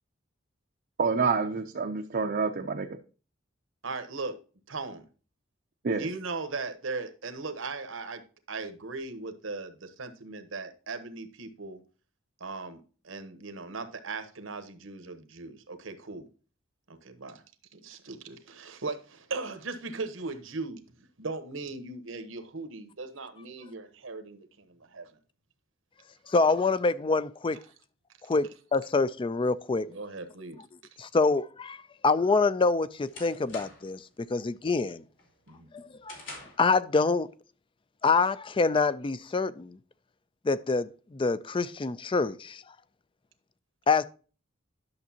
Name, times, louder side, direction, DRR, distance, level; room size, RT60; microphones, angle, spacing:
voice 1, 1.0-3.0 5.8-6.1, right 4 dB, 50° right, 0.6 m, -28 dB
voice 2, 3.8-4.4 4.7-5.0 5.9-8.2 8.5-11.8 12.4-16.3 16.9-17.4 17.7-25.1 29.9-30.6 35.5-35.7, right 3 dB, 80° right, 1.1 m, -38 dB
voice 3, 26.3-27.6 28.3-29.9 31.0-31.8 32.0-34.0 34.3-35.0 35.7-36.2 36.6-37.3 38.0-39.8 40.4-42.6 43.9-44.0, left 4 dB, 25° left, 0.4 m, -26 dB
sound 1, 32.2-34.0 34.4-34.8 35.2-36.7, left 2 dB, 75° left, 3.1 m, -46 dB
11.0 x 6.4 x 2.8 m
head